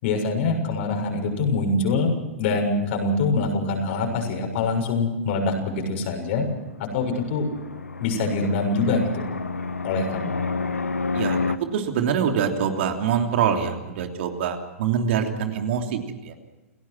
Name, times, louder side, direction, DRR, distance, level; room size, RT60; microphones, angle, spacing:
voice 1, 0.0-6.5 6.8-7.5 8.0-9.2 9.8-10.4, left 3 dB, 55° left, 3 dB, 6.9 m, -24 dB
Fixed-wing aircraft airplane, 6.7-11.6, left 4 dB, 90° left, 1.1 m, -29 dB
voice 2, 11.1-16.3, right 7 dB, 60° right, 4 dB, 3.2 m, -25 dB
30.0 x 17.0 x 6.2 m, 1.1 s
hypercardioid pair, 110°, 8 cm